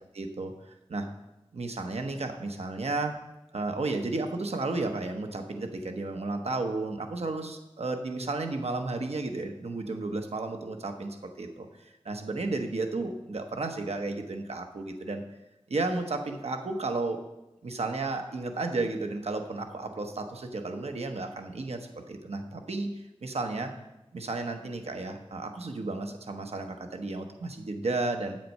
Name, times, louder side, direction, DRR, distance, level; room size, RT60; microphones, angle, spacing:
voice 1, 0.1-0.5 0.9-1.1 1.5-3.1 3.5-15.2 15.7-17.2 17.6-23.7 24.1-28.4, right 3 dB, 85° right, 5 dB, 0.9 m, -33 dB
7.9 x 7.5 x 5.4 m, 0.97 s
wide cardioid pair, 50°, 10 cm